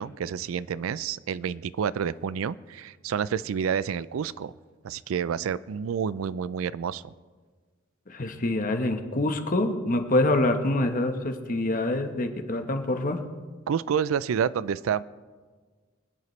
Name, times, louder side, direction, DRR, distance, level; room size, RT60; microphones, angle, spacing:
voice 1, 0.0-4.5 4.8-7.1 13.7-15.0, right 7 dB, 80° right, 18 dB, 0.4 m, -29 dB
voice 2, 8.1-13.2, left 2 dB, 40° left, 6 dB, 1.1 m, -26 dB
24.5 x 9.5 x 3.2 m, 1.5 s
head